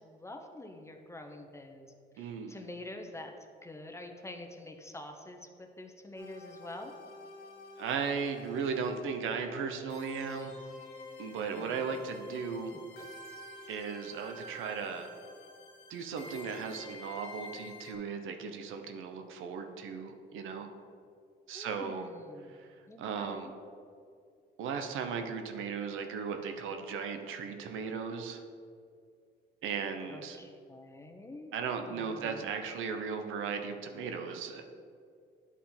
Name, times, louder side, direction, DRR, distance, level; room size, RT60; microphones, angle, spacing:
voice 1, 0.0-3.3 3.6-6.9 11.5-12.0 21.5-22.6 22.9-23.5 30.1-31.5 31.8-32.5, left 1 dB, 15° left, 4 dB, 0.7 m, -47 dB
voice 2, 2.2-2.5 7.8-10.5 11.2-12.7 13.7-15.1 15.9-20.7 21.5-22.1 22.5-22.7 23.0-23.5 24.6-28.4 29.6-30.4 31.5-34.7, right 6 dB, 85° right, 5 dB, 0.7 m, -36 dB
sound 1, 6.2-17.9, left 2 dB, 85° left, 1.2 m, -49 dB
9.7 x 3.6 x 4.3 m, 2.3 s
cardioid pair, 90°, 20 cm